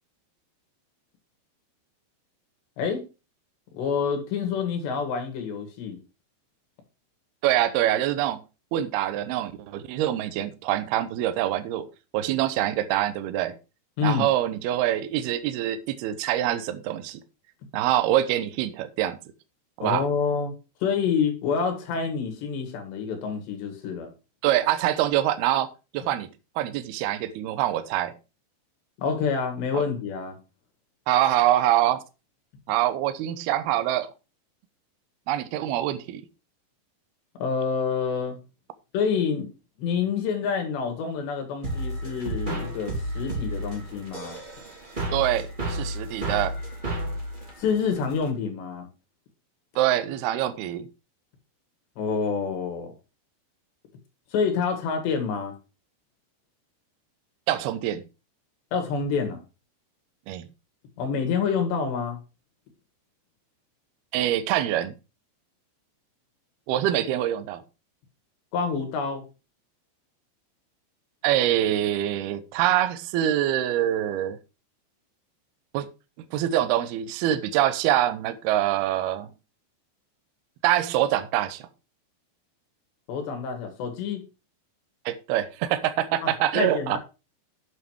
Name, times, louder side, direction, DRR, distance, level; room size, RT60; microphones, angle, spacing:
voice 1, 3.7-6.0 14.0-14.3 19.8-20.5 20.8-24.1 29.0-30.4 37.4-38.4 38.9-39.5 39.8-44.4 47.6-48.9 52.0-52.9 54.3-55.6 58.7-59.4 61.0-62.2 68.5-69.2 83.1-84.2 86.2-87.0, left 6 dB, 70° left, 4.2 m, -27 dB
voice 2, 7.4-8.4 8.7-11.9 12.1-13.6 14.0-17.2 17.7-19.2 19.8-20.1 24.4-25.7 25.9-26.3 26.6-28.1 29.7-29.8 31.1-32.0 32.7-34.1 35.3-36.2 45.1-46.5 49.8-50.9 57.5-58.0 60.3-60.5 64.1-64.9 66.7-67.6 71.2-74.4 75.7-75.9 76.3-79.3 80.6-81.7 85.1-87.0, right 12 dB, 75° right, 2.5 m, -25 dB
sound 1, 41.6-48.3, right 1 dB, 10° right, 3.3 m, -32 dB
8.8 x 7.6 x 4.7 m
omnidirectional pair, 5.2 m